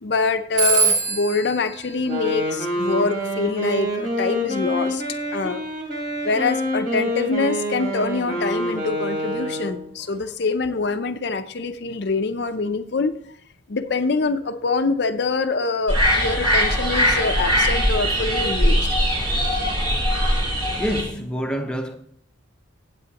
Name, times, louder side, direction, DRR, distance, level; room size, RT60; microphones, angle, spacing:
voice 1, 0.0-5.0 5.3-5.6 6.2-13.1 13.7-19.0, left 3 dB, 55° left, 0.5 m, -24 dB
Telephone, 0.6-3.1, right 5 dB, 75° right, 1.7 m, -24 dB
Wind instrument woodwind instrument, 2.0-9.9, equal, 45° right, 3.6 m, -26 dB
sound 1, 15.9-21.0, equal, 25° right, 3.0 m, -21 dB
voice 2, 20.8-22.0, equal, 5° left, 0.8 m, -26 dB
16.0 x 8.5 x 2.9 m
head